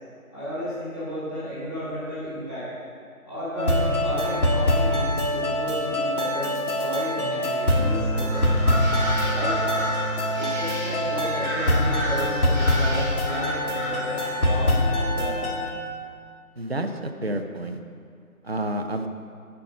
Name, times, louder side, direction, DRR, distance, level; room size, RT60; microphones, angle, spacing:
voice 1, 0.3-2.7 3.2-8.8 9.2-9.5 10.3-14.8 15.1-15.4, equal, 15° left, -13 dB, 2.4 m, -33 dB
sound 1, 3.6-15.7, left 1 dB, 75° left, 1.9 m, -24 dB
sound 2, 8.3-14.7, equal, 10° right, 1.9 m, -32 dB
voice 2, 16.6-17.8 18.4-19.1, right 1 dB, 45° right, 6 dB, 0.6 m, -29 dB
12.5 x 5.8 x 5.2 m, 2.2 s
figure-of-eight pair, 170°, 44 cm